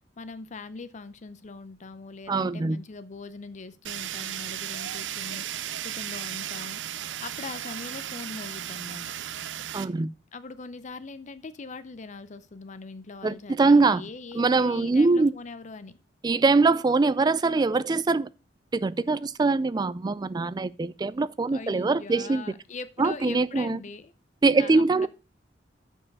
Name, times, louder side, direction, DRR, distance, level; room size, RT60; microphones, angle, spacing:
voice 1, 0.2-9.0 10.3-16.0 21.5-24.1 24.5-25.1, left 3 dB, 40° left, 0.6 m, -41 dB
voice 2, 2.3-2.8 9.7-10.1 13.2-14.0 14.3-15.3 16.2-18.3 18.7-22.4 23.0-23.8 24.4-25.1, right 3 dB, 20° right, 0.3 m, -23 dB
Fire, 3.8-9.8, right 11 dB, 85° right, 0.5 m, -35 dB
7.2 x 5.5 x 6.5 m
head